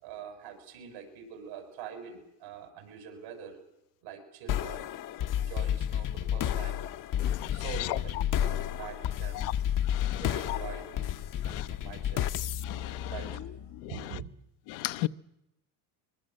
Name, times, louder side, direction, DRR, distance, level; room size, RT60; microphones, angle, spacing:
voice 1, 0.0-3.6 4.0-4.9 5.3-6.8 7.5-9.6 10.2-12.2 13.1-13.5 13.9-14.3, right 7 dB, 85° right, 7.4 m, -44 dB
sound 1, 4.5-13.9, left 10 dB, 45° left, 0.9 m, -32 dB
voice 2, 7.2-7.6 9.4-9.5 9.9-10.2 10.5-10.6 11.5-11.6 12.7-13.1 14.7-15.1, left 18 dB, 75° left, 0.9 m, -35 dB
23.5 x 22.5 x 7.7 m
supercardioid pair, 100°, 44 cm